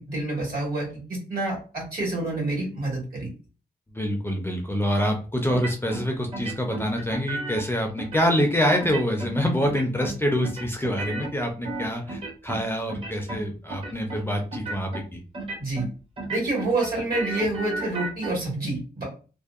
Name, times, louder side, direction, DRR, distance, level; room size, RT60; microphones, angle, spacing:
voice 1, 0.0-3.3 15.6-15.8 16.3-19.0, right 2 dB, 65° right, -2 dB, 1.5 m, -28 dB
voice 2, 3.9-15.2, equal, 15° left, 2 dB, 0.4 m, -26 dB
sound 1, 5.5-6.0 6.3-7.7 8.0-8.5 8.8-9.3 9.6-10.2 10.4-12.6 12.9-13.4 13.7-14.2 14.5-15.0 15.3-15.9 16.2-18.3, right 2 dB, 35° right, 0.6 m, -34 dB
2.6 x 2.0 x 2.4 m, 0.36 s
wide cardioid pair, 115°, 16 cm